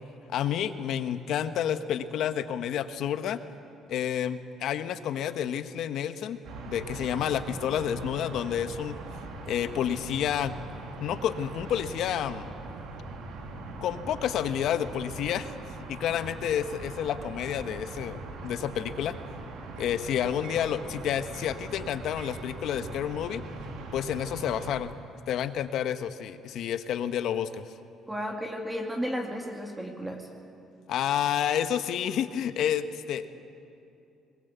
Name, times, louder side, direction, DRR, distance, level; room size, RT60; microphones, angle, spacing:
voice 1, 0.3-3.4 3.9-6.4 6.7-9.0 9.5-10.5 11.0-12.5 13.8-15.5 15.9-19.2 19.8-23.4 23.9-24.9 25.3-27.6 30.9-33.3, left 9 dB, 70° left, 10 dB, 1.1 m, -30 dB
sound 1, 6.4-24.8, right 3 dB, 75° right, 2.9 m, -41 dB
voice 2, 28.1-30.3, equal, 10° right, 2 dB, 2.1 m, -33 dB
21.5 x 20.5 x 8.2 m, 2.7 s
cardioid pair, 120°, 0 cm